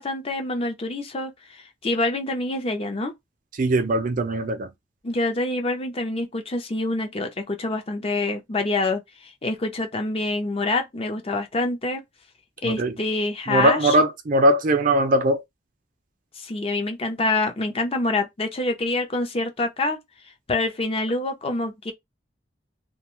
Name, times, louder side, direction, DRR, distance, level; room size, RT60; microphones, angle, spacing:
voice 1, 0.0-3.1 5.0-12.0 12.6-14.0 16.4-20.0 20.5-21.9, left 2 dB, 35° left, 0.5 m, -26 dB
voice 2, 3.6-4.7 12.6-12.9 13.5-15.4, right 1 dB, 45° right, 0.5 m, -20 dB
2.3 x 2.2 x 3.0 m
head